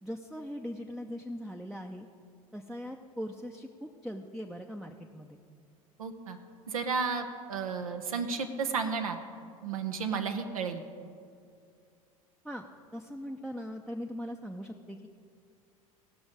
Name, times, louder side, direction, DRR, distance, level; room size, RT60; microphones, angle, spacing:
voice 1, 0.0-2.1 2.5-5.4 12.4-12.7 12.9-15.1, equal, ahead, 3 dB, 0.6 m, -40 dB
voice 2, 6.0-6.4 6.7-9.2 9.6-10.8, right 5 dB, 75° right, 5 dB, 0.9 m, -32 dB
18.0 x 6.1 x 5.0 m, 2.4 s
figure-of-eight pair, 75°, 18 cm